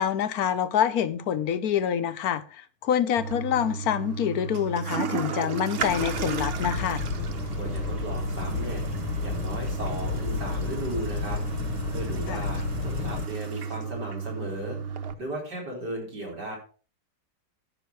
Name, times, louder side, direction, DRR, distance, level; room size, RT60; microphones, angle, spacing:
voice 1, 0.0-7.0 12.3-12.4, left 9 dB, 65° left, 11 dB, 1.2 m, -26 dB
Toilet flush, 3.2-15.1, right 6 dB, 50° right, 0.7 m, -33 dB
sound 1, 5.8-13.3, left 6 dB, 80° left, 1.7 m, -32 dB
voice 2, 7.6-8.8 9.2-16.5, right 1 dB, 70° right, -2 dB, 4.9 m, -36 dB
14.0 x 6.2 x 4.6 m, 0.38 s
omnidirectional pair, 1.9 m